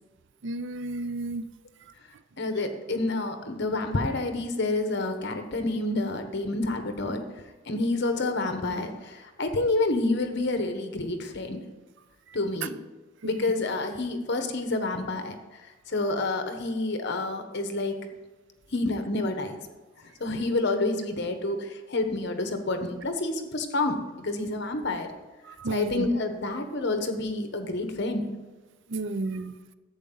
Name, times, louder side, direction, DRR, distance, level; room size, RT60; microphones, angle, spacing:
voice 1, 0.4-1.5 8.2-8.3 13.2-13.4 25.4-26.1 28.9-29.5, right 2 dB, 65° right, 13 dB, 0.5 m, -32 dB
voice 2, 2.4-7.2 7.7-11.6 12.3-12.7 13.2-15.6 15.9-18.0 18.7-19.6 20.0-25.1 25.7-28.2, left 2 dB, 60° left, 7 dB, 1.1 m, -28 dB
11.0 x 8.1 x 3.9 m, 1.2 s
head